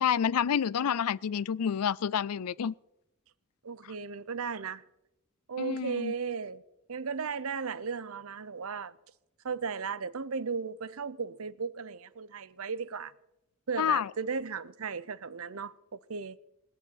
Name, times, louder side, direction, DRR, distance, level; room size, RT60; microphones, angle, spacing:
voice 1, 0.0-2.7 5.6-6.1 13.8-14.1, left 8 dB, 85° left, 0.4 m, -28 dB
voice 2, 3.6-4.8 5.5-6.6 6.9-8.9 9.4-13.1 13.7-16.4, right 5 dB, 70° right, 0.7 m, -36 dB
19.0 x 7.1 x 9.7 m
head